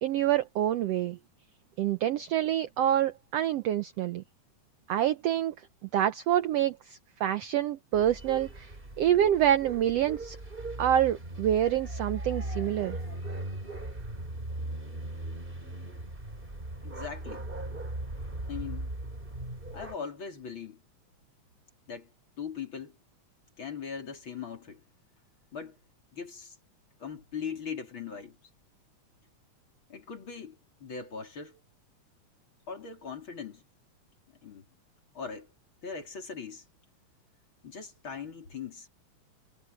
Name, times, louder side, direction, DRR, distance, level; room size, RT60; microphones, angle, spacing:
voice 1, 0.0-1.2 1.8-4.2 4.9-5.5 5.9-8.7 9.0-10.4 10.8-13.0, right 11 dB, 80° right, 1.4 m, -27 dB
sound 1, 7.9-20.0, right 1 dB, 15° right, 3.7 m, -38 dB
voice 2, 16.8-17.4 18.5-18.9 19.7-20.8 21.9-22.1 22.4-23.0 23.6-24.8 25.5-25.8 26.1-26.6 27.0-28.4 29.9-31.6 32.7-33.6 34.4-34.6 35.1-35.5 35.8-36.6 37.6-38.9, left 6 dB, 40° left, 4.0 m, -40 dB
omnidirectional pair, 3.7 m